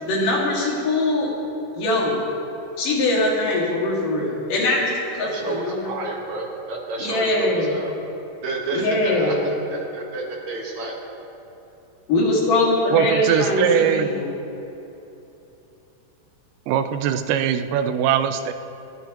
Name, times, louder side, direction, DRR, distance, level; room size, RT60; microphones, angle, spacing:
voice 1, 0.0-1.3 1.8-2.2 2.8-5.9 7.0-7.7 8.7-9.4 12.1-14.3, left 2 dB, 80° left, -4 dB, 3.9 m, -22 dB
voice 2, 5.2-7.9 8.4-11.0, right 3 dB, 60° right, -1 dB, 2.7 m, -30 dB
voice 3, 12.9-14.1 16.7-18.5, right 9 dB, 85° right, 9 dB, 2.3 m, -21 dB
29.0 x 10.5 x 3.0 m, 3.0 s
omnidirectional pair, 3.7 m